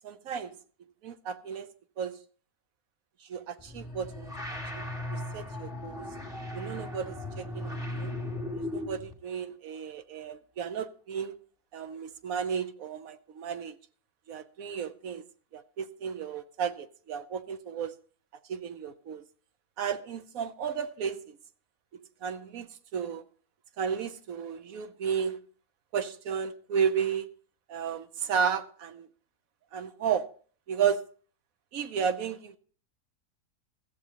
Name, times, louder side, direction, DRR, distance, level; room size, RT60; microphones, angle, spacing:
voice 1, 0.0-0.5 1.0-1.7 2.0-2.2 3.3-6.1 6.5-8.1 8.6-11.3 11.7-13.8 14.3-15.2 15.5-17.9 18.5-19.2 19.8-21.4 22.2-23.2 23.8-25.4 25.9-27.3 27.7-29.1 29.7-30.3 30.7-31.0 31.7-32.6, right 7 dB, 65° right, 1.1 m, -33 dB
sound 1, 3.6-9.1, left 1 dB, ahead, 2.2 m, -37 dB
15.5 x 14.0 x 2.9 m
omnidirectional pair, 1.7 m